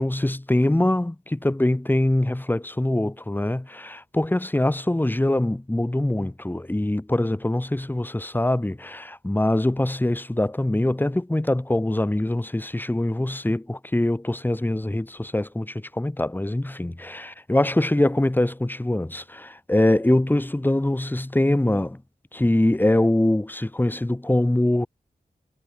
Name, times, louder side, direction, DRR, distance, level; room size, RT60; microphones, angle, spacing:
voice 1, 0.0-22.0 22.3-24.9, left 1 dB, 10° left, 1.0 m, -23 dB
cardioid pair, 65°, 17 cm